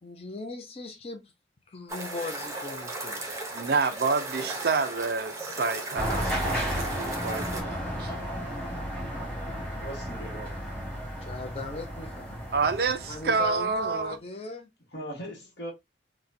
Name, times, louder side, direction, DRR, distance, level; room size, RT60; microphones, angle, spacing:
voice 1, 0.0-1.3 1.7-3.3 11.2-12.4 13.1-14.7, left 2 dB, 35° left, 0.5 m, -38 dB
sound 1, 1.9-7.6, right 2 dB, 15° right, 0.6 m, -36 dB
voice 2, 3.5-8.1 12.5-14.2, right 4 dB, 55° right, 0.5 m, -28 dB
sound 2, 6.0-13.8, equal, 5° left, 1.3 m, -33 dB
voice 3, 9.8-10.8 14.9-15.7, equal, 65° left, 1.2 m, -39 dB
4.1 x 2.2 x 2.5 m
head